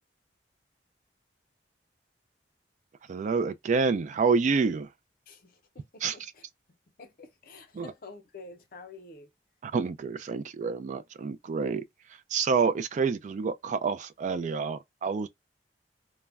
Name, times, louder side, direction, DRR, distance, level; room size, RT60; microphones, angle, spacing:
voice 1, 3.1-4.9 6.0-6.2 7.7-7.9 9.6-11.8 12.1-15.3, right 5 dB, 45° right, 0.3 m, -28 dB
voice 2, 5.3-9.3, left 3 dB, 55° left, 0.6 m, -49 dB
2.2 x 2.1 x 3.4 m
head